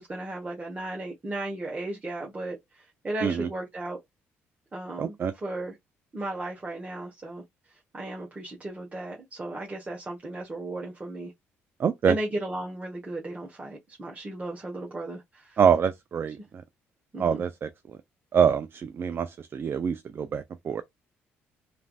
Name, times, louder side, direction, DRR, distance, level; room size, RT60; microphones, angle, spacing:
voice 1, 0.0-4.0 4.7-5.7 6.1-7.4 7.9-11.3 12.1-15.6 17.1-17.4, right 1 dB, 25° right, 1.1 m, -35 dB
voice 2, 5.0-5.3 11.8-12.2 15.6-16.4 17.2-17.7 18.3-20.8, right 7 dB, 45° right, 0.4 m, -25 dB
3.2 x 2.5 x 2.3 m
supercardioid pair, 65°, 5 cm